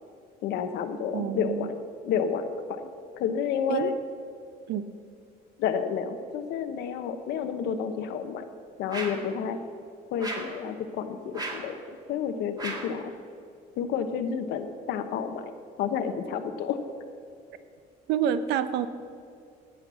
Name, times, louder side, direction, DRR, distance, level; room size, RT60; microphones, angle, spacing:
voice 1, 0.4-2.9 3.2-3.9 5.6-8.4 8.8-9.6 10.1-13.1 13.8-15.5 15.8-16.8, left 7 dB, 85° left, 9 dB, 1.0 m, -30 dB
voice 2, 1.1-1.7 3.7-3.9 4.7-4.8 18.1-18.9, right 9 dB, 85° right, 12 dB, 0.8 m, -27 dB
sound 1, 8.9-9.3 10.2-10.6 11.3-11.7 12.6-13.0, right 2 dB, 25° right, 2.0 m, -35 dB
16.5 x 5.9 x 6.9 m, 2.4 s
cardioid pair, 110°, 17 cm